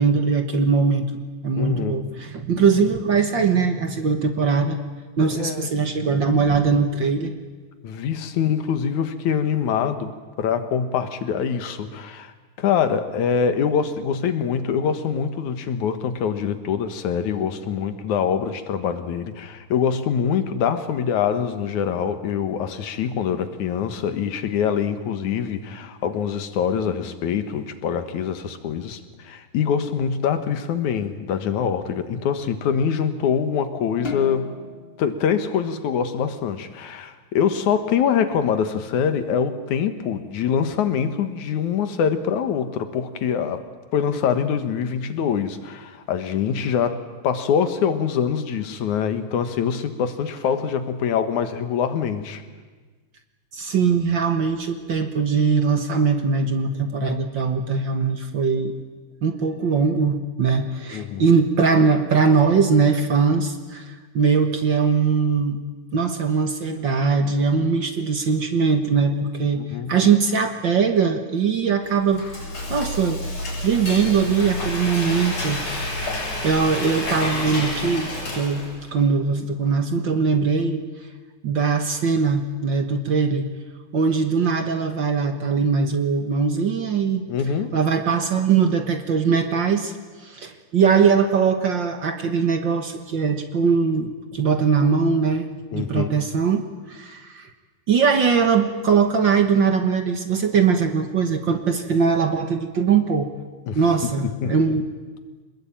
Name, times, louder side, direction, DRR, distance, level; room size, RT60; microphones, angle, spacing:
voice 1, 0.0-4.8 5.2-7.3 53.5-58.7 59.2-65.6 65.9-72.2 72.7-73.2 73.6-75.6 76.4-80.8 81.4-83.5 83.9-87.3 87.7-89.9 90.2-97.5 97.9-103.3 103.8-104.8, right 5 dB, 50° right, 7 dB, 1.7 m, -21 dB
voice 2, 1.6-2.0 5.2-5.7 7.8-12.3 12.6-34.6 35.0-43.7 43.9-52.4 60.9-61.3 69.5-69.9 87.3-87.8 95.7-96.2 103.7-104.8, left 7 dB, 85° left, 9 dB, 2.9 m, -24 dB
sound 1, 34.0-36.6, left 4 dB, 35° left, 0.9 m, -36 dB
Frying (food), 71.8-78.9, left 1 dB, 60° left, 8.1 m, -29 dB
26.0 x 20.5 x 8.9 m, 1.4 s
omnidirectional pair, 3.3 m